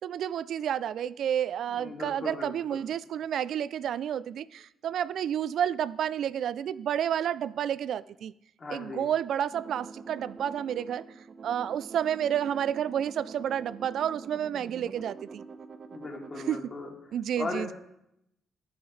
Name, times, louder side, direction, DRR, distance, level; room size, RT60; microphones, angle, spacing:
voice 1, 0.0-8.3 8.7-11.0 11.4-15.4 16.5-16.6 17.1-17.7, right 9 dB, 70° right, 0.3 m, -30 dB
voice 2, 1.7-2.8 8.6-9.1 15.9-16.9 17.4-17.7, left 3 dB, 35° left, 2.8 m, -37 dB
sound 1, 9.5-16.6, right 4 dB, 45° right, 1.0 m, -45 dB
17.5 x 7.1 x 3.2 m
cardioid pair, 90°, 0 cm